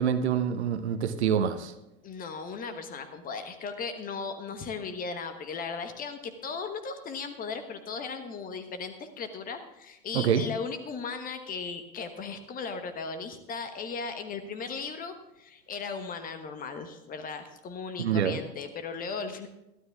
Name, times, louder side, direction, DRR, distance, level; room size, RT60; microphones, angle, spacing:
voice 1, 0.0-1.7 10.1-10.5 18.0-18.4, right 8 dB, 60° right, 11 dB, 1.0 m, -26 dB
voice 2, 2.0-19.5, left 5 dB, 25° left, 9 dB, 1.1 m, -37 dB
22.0 x 13.0 x 2.4 m, 0.91 s
figure-of-eight pair, 85°, 38 cm